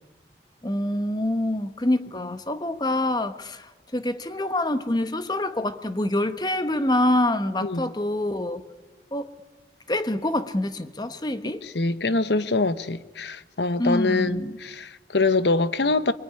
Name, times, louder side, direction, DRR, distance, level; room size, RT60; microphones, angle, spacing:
voice 1, 0.6-8.6 9.1-9.3 9.9-11.6 13.8-14.6, left 1 dB, 25° left, 1.2 m, -26 dB
voice 2, 7.6-7.9 11.6-16.1, left 3 dB, 75° left, 1.0 m, -24 dB
25.5 x 24.5 x 9.7 m
head